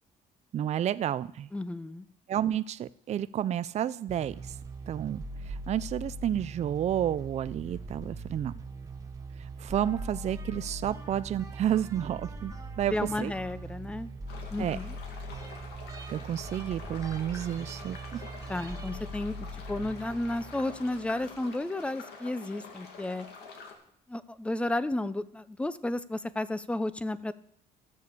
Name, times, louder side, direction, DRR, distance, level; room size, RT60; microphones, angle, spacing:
voice 1, 0.5-1.5 2.3-4.4 4.9-8.5 9.6-12.9 13.2-13.3 14.6-14.8 16.1-18.2, right 10 dB, 40° right, 15 dB, 0.4 m, -31 dB
voice 2, 1.5-2.1 12.9-14.1 14.5-14.9 18.5-23.3 24.1-27.3, left 1 dB, 5° left, 16 dB, 0.5 m, -32 dB
sound 1, 4.1-21.4, right 2 dB, 20° right, 1.2 m, -41 dB
sound 2, 14.3-23.7, left 4 dB, 75° left, 2.3 m, -47 dB
14.0 x 6.9 x 6.8 m, 0.72 s
cardioid pair, 110°, 17 cm